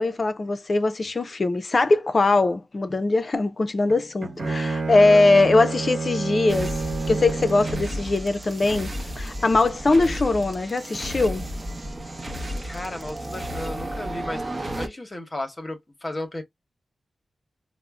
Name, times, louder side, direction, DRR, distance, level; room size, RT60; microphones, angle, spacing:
voice 1, 0.0-6.8 7.1-11.5, left 2 dB, 40° left, 0.5 m, -21 dB
Bowed string instrument, 3.9-8.0, right 3 dB, 60° right, 1.0 m, -29 dB
sound 1, 6.5-14.9, equal, 30° right, 0.8 m, -33 dB
voice 2, 12.6-16.4, left 1 dB, 25° left, 1.0 m, -34 dB
5.0 x 2.0 x 2.3 m
wide cardioid pair, 95°, 0 cm